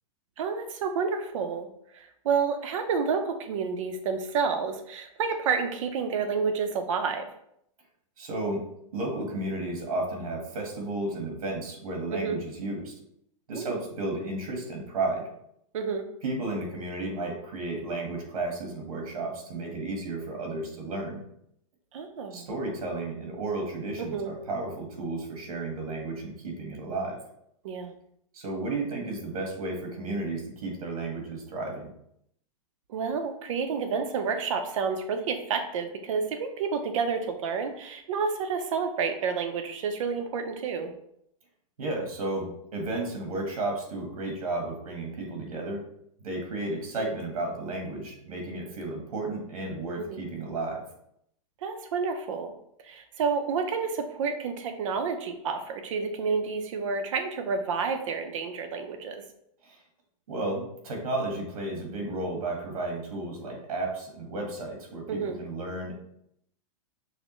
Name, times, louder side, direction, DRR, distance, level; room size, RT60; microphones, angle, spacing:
voice 1, 0.4-1.7 1.9-7.3 12.1-12.4 13.5-13.8 15.7-16.0 21.9-22.5 24.0-24.3 27.6-27.9 32.9-40.9 50.0-50.3 51.6-52.5 52.8-59.2 65.1-65.4, right 5 dB, 60° right, 6 dB, 0.7 m, -29 dB
voice 2, 8.2-8.6 8.9-12.9 13.5-15.3 16.2-21.2 22.3-27.2 28.3-31.9 41.8-45.8 46.2-50.8 59.6-59.8 60.3-65.9, right 2 dB, 85° right, 1 dB, 1.4 m, -33 dB
6.3 x 2.2 x 3.0 m, 0.74 s
supercardioid pair, 165°, 18 cm